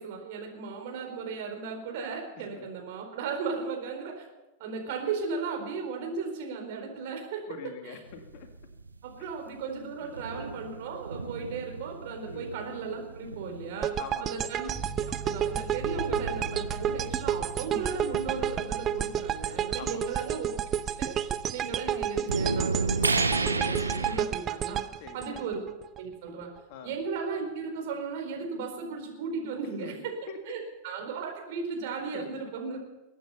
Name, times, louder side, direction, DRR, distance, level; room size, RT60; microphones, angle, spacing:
voice 1, 0.0-4.2 4.6-7.4 7.8-8.0 9.0-13.9 14.2-14.7 15.1-20.5 21.0-24.8 25.1-25.6 26.0-26.5 26.8-30.1 30.4-32.8, right 5 dB, 50° right, 2 dB, 4.3 m, -36 dB
voice 2, 7.5-8.5 9.2-9.3 10.0-10.3 12.3-12.5 14.0-14.5 19.8-20.1 25.0-25.4 26.7-26.9 29.8-30.6 32.1-32.3, left 5 dB, 45° left, 6 dB, 2.0 m, -44 dB
sound 1, 8.1-15.0 15.8-21.7 22.0-24.2, right 3 dB, 80° right, 0.9 m, -34 dB
sound 2, 13.8-26.0, right 9 dB, 30° right, 0.7 m, -31 dB
sound 3, 14.7-25.3, right 4 dB, 5° right, 2.5 m, -46 dB
22.5 x 9.2 x 5.7 m, 0.99 s
figure-of-eight pair, 90°, 0 cm